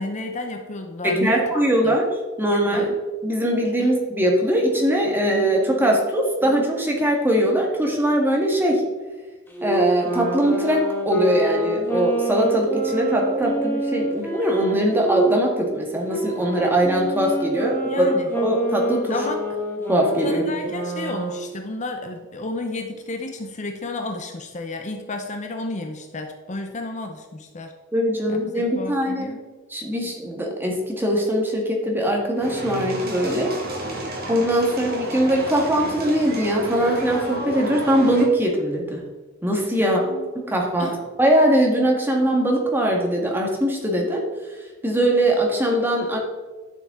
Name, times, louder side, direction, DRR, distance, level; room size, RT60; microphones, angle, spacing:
voice 1, 0.0-1.4 1.8-1.9 2.7-3.0 3.3-3.4 3.8-3.9 17.9-18.3 19.1-19.4 20.2-27.7 28.3-29.4 39.8-40.3 40.8-41.0, left 2 dB, 35° left, 4 dB, 0.7 m, -31 dB
voice 2, 1.0-2.0 2.4-2.9 3.2-8.8 9.6-19.2 19.9-20.4 27.9-29.3 29.7-33.5 34.3-39.0 39.4-40.0 40.5-40.9 41.2-44.2 44.8-46.2, right 1 dB, 10° right, 0 dB, 1.6 m, -21 dB
Wind instrument woodwind instrument, 9.5-15.3 16.1-21.5, right 1 dB, 10° left, 1.5 m, -27 dB
sound 1, 32.3-38.3, right 1 dB, 50° right, 1.8 m, -31 dB
11.5 x 6.7 x 3.7 m, 1.3 s
head